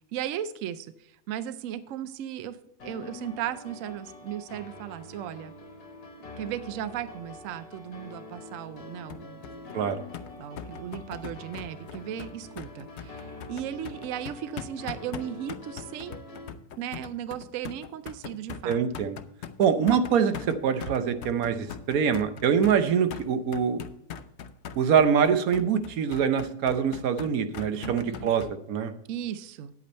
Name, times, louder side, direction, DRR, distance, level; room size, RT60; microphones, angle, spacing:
voice 1, 0.1-5.5 6.4-9.8 10.4-16.3 16.8-18.8 27.7-28.3 29.1-29.7, right 10 dB, 75° right, 13 dB, 0.7 m, -36 dB
sound 1, 2.8-16.5, left 3 dB, 60° left, 1.5 m, -45 dB
sound 2, 9.1-28.5, left 8 dB, 85° left, 0.6 m, -41 dB
voice 2, 18.6-19.2 19.6-23.8 24.8-28.9, right 7 dB, 60° right, 10 dB, 1.1 m, -24 dB
9.5 x 8.4 x 4.2 m, 0.73 s
omnidirectional pair, 1.9 m